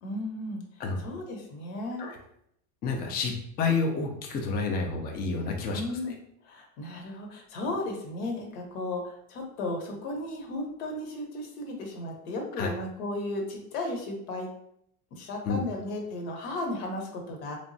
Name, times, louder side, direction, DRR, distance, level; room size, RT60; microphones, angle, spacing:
voice 1, 0.0-0.6 1.0-2.0 5.7-6.2 6.4-14.5 15.1-17.6, left 2 dB, 80° left, 1 dB, 0.9 m, -35 dB
voice 2, 2.8-5.8 6.1-6.2 12.6-12.7 15.4-15.6, left 4 dB, 25° left, 2 dB, 0.4 m, -29 dB
3.3 x 2.0 x 2.6 m, 0.72 s
supercardioid pair, 115°, 42 cm